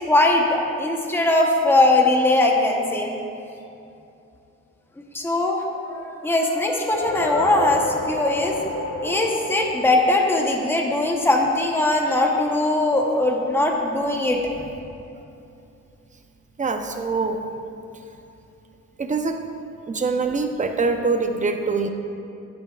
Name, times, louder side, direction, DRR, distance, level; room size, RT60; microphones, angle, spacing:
voice 1, 0.0-3.1 5.1-8.6 9.0-14.6, left 2 dB, 5° left, 0 dB, 1.0 m, -20 dB
sound 1, 6.7-11.3, left 2 dB, 60° left, 2.0 m, -30 dB
voice 2, 16.6-17.4 19.0-19.4 19.9-21.9, right 4 dB, 25° right, 5 dB, 0.7 m, -24 dB
10.0 x 9.7 x 2.4 m, 2.7 s
cardioid pair, 90°, 30 cm